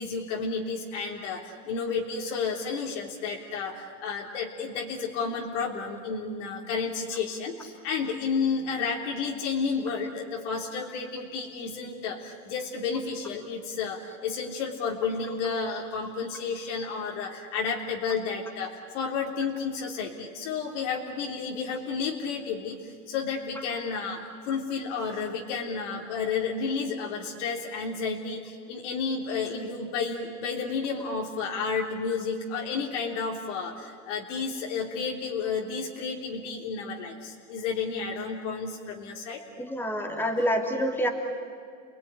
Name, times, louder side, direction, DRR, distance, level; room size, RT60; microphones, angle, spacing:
voice 1, 0.0-39.4, left 5 dB, 65° left, -1 dB, 3.7 m, -31 dB
voice 2, 39.6-41.1, equal, 5° left, 3 dB, 2.9 m, -27 dB
29.5 x 20.0 x 10.0 m, 2.2 s
supercardioid pair, 135°, 38 cm